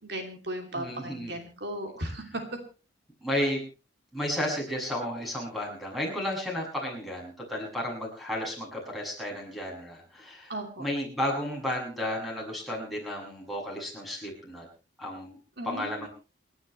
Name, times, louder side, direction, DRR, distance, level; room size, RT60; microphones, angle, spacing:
voice 1, 0.0-2.4 10.5-10.8 15.6-16.1, right 1 dB, 65° right, 3 dB, 2.9 m, -36 dB
voice 2, 0.7-1.4 2.0-2.1 3.2-3.6 4.1-10.5 10.8-14.7 15.0-15.4 15.6-16.1, left 1 dB, ahead, -3 dB, 7.0 m, -33 dB
29.0 x 11.5 x 3.3 m, 0.34 s
head